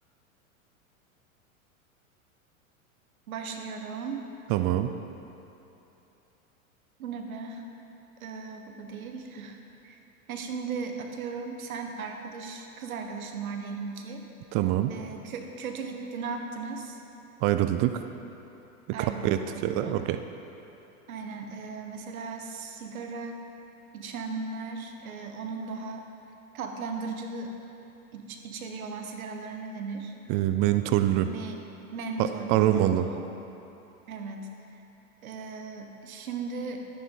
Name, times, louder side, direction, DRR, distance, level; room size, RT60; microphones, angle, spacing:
voice 1, 3.3-4.3 7.0-7.7 8.2-9.6 9.8-10.0 10.3-14.2 14.9-17.0 18.9-20.0 21.1-23.5 23.9-26.1 26.5-27.6 28.1-30.1 31.3-31.6 31.9-33.2 34.1-34.5 35.2-36.8, right 4 dB, 75° right, 4 dB, 1.3 m, -37 dB
voice 2, 4.5-4.9 14.5-14.9 17.4-17.9 19.2-20.2 30.3-31.3 32.2-33.1, right 13 dB, 35° right, 9 dB, 0.4 m, -24 dB
11.5 x 10.0 x 3.9 m, 2.9 s
hypercardioid pair, 100°, 42 cm